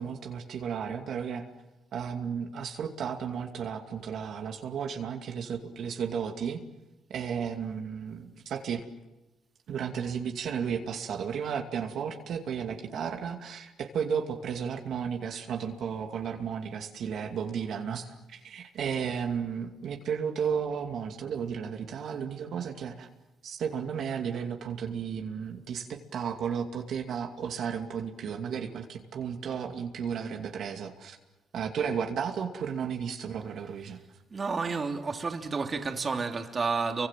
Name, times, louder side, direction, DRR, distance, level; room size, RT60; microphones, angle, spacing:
voice 1, 0.0-1.5 1.9-6.6 7.1-8.8 9.7-23.1 23.4-31.2 31.5-34.0, right 7 dB, 70° right, 2.5 m, -33 dB
voice 2, 34.3-37.1, right 4 dB, 35° right, 3.0 m, -30 dB
30.0 x 24.5 x 7.5 m
cardioid pair, 90°, 0 cm